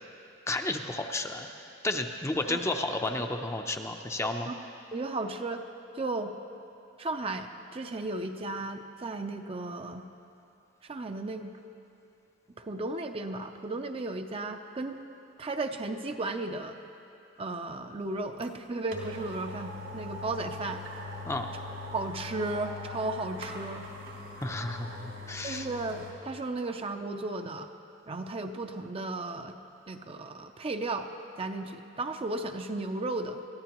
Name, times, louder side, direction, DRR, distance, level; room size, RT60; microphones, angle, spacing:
voice 1, 0.5-1.5 1.8-4.5 21.3-21.5 24.4-25.7, left 2 dB, 15° left, 4 dB, 0.6 m, -32 dB
voice 2, 4.2-4.5 4.9-5.6 5.9-6.3 7.0-7.5 7.7-10.1 10.8-11.5 12.6-15.0 15.4-16.7 17.4-20.8 21.9-23.9 25.4-27.7 28.1-29.5 29.9-31.1 31.4-33.4, right 2 dB, 30° right, 6 dB, 0.5 m, -34 dB
sound 1, 18.4-18.5 18.9-26.2 26.6-26.7, left 2 dB, 80° right, 2.8 m, -41 dB
22.0 x 14.0 x 3.0 m, 2.7 s
head